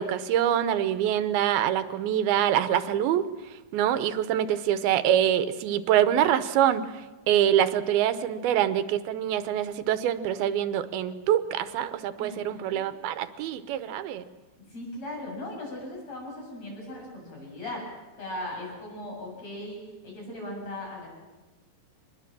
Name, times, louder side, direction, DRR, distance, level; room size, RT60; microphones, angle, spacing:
voice 1, 0.0-14.2, right 10 dB, 85° right, 12 dB, 2.8 m, -25 dB
voice 2, 12.2-12.9 14.6-17.9 18.2-21.1, left 1 dB, 45° left, -1 dB, 8.8 m, -38 dB
24.0 x 20.5 x 7.5 m, 1.1 s
omnidirectional pair, 4.2 m